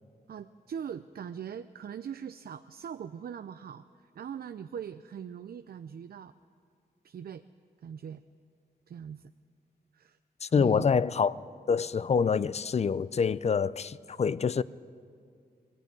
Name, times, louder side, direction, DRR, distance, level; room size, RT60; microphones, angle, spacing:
voice 1, 0.3-6.3 7.0-7.4 7.8-8.2 8.9-9.3 9.9-10.9, right 8 dB, 65° right, 0.5 m, -41 dB
voice 2, 10.4-11.3 11.7-14.6, left 6 dB, 40° left, 0.4 m, -26 dB
21.5 x 14.5 x 9.6 m
wide cardioid pair, 125°, 17 cm